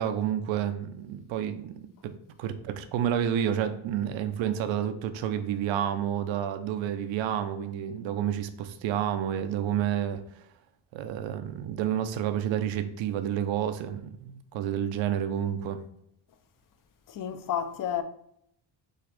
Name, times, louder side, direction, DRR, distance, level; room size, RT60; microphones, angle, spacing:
voice 1, 0.0-10.2 10.9-15.8, right 10 dB, 70° right, 0.7 m, -30 dB
voice 2, 17.1-18.0, left 9 dB, 45° left, 0.6 m, -31 dB
6.4 x 2.5 x 3.3 m
cardioid pair, 95°, 47 cm